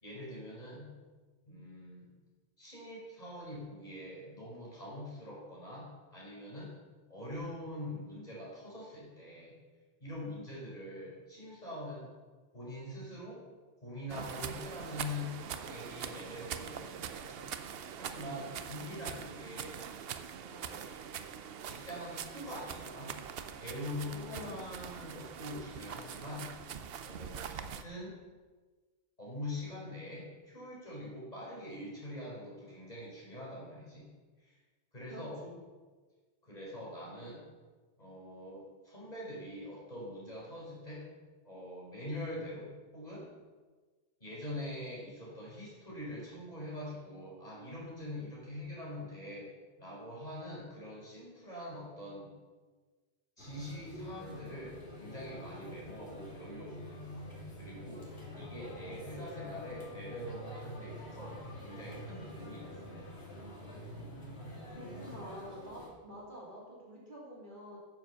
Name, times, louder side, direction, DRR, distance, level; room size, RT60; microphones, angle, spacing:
voice 1, 0.0-1.0 1.4-2.1 2.6-6.8 7.1-9.6 10.0-12.1 12.5-13.4 13.8-17.4 17.9-19.8 20.4-20.9 21.6-23.2 23.6-26.5 27.0-28.2 29.2-34.1 34.4-34.6 34.9-35.4 36.4-37.4 38.0-41.1 41.4-43.3 44.2-49.5 49.8-52.3 53.4-57.3 57.6-58.0 58.3-62.9, left 1 dB, 40° left, -6 dB, 4.4 m, -44 dB
sound 1, 14.1-27.8, right 8 dB, 70° right, 0.8 m, -43 dB
voice 2, 35.1-35.6 64.8-67.8, equal, 50° right, -5 dB, 3.2 m, -47 dB
sound 2, 53.4-65.9, equal, 80° left, 3.0 m, -46 dB
9.4 x 7.6 x 6.8 m, 1.4 s
omnidirectional pair, 1.1 m